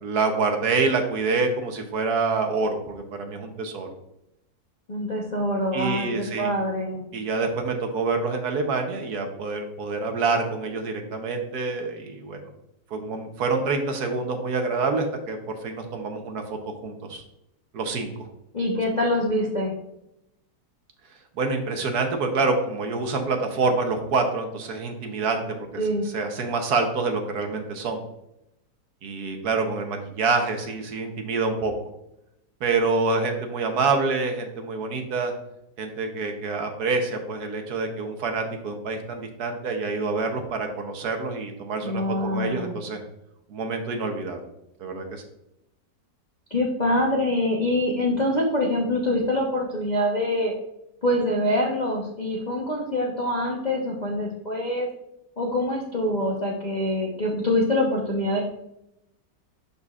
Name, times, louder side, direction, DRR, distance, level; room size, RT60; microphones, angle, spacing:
voice 1, 0.0-3.9 5.7-6.5 7.1-12.4 12.9-17.2 17.7-18.3 21.4-28.0 29.0-31.7 32.6-35.3 35.8-43.0 43.5-44.5 44.8-45.2, right 4 dB, 65° right, 4 dB, 1.3 m, -27 dB
voice 2, 4.9-7.0 18.5-19.7 25.8-26.1 41.8-42.7 46.5-50.5 51.0-54.9 55.4-58.4, left 1 dB, 40° left, -3 dB, 0.6 m, -25 dB
11.5 x 4.2 x 2.4 m, 0.82 s
omnidirectional pair, 2.0 m